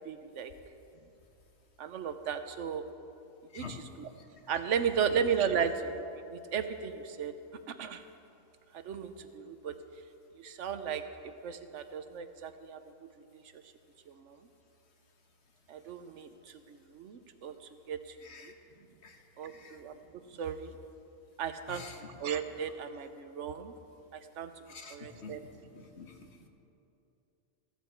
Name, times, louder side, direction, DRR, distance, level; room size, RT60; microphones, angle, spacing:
voice 1, 0.0-0.5 1.8-2.8 3.5-4.1 4.5-7.3 7.7-8.0 8.7-9.7 10.4-13.6 14.1-14.4 15.7-18.2 18.4-18.5 19.4-20.0 20.3-20.7 21.4-21.8 22.2-23.7 24.1-24.5 24.9-25.4, right 7 dB, 85° right, 9 dB, 1.1 m, -35 dB
voice 2, 18.2-18.5 19.0-19.2 19.5-19.8 21.7-22.0 24.7-24.9 25.2-25.4 25.7-26.1, left 5 dB, 65° left, 4 dB, 1.5 m, -46 dB
15.0 x 14.0 x 4.5 m, 2.7 s
omnidirectional pair, 1.2 m